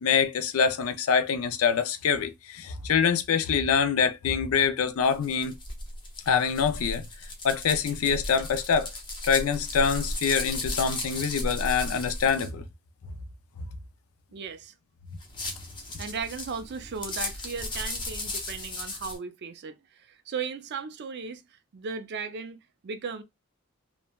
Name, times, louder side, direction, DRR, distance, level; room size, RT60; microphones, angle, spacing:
voice 1, 0.0-5.5 6.3-7.1 7.4-8.9 9.2-12.6, left 6 dB, 70° left, 0.4 m, -25 dB
sound 1, 5.0-12.5 15.2-19.2, left 2 dB, 20° left, 0.6 m, -35 dB
voice 2, 14.3-14.7 16.0-23.2, right 5 dB, 50° right, 0.4 m, -36 dB
3.1 x 2.1 x 2.2 m
head